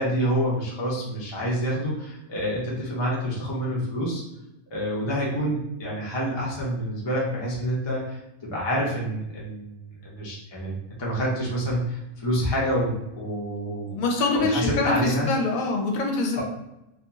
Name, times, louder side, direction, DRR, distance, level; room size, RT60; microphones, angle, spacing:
voice 1, 0.0-4.2 4.7-10.7 11.0-13.9 14.2-15.3 16.3-16.4, equal, 30° left, -5 dB, 0.6 m, -27 dB
voice 2, 13.9-16.4, left 3 dB, 80° left, 1 dB, 1.0 m, -25 dB
2.8 x 2.5 x 2.4 m, 0.91 s
omnidirectional pair, 1.4 m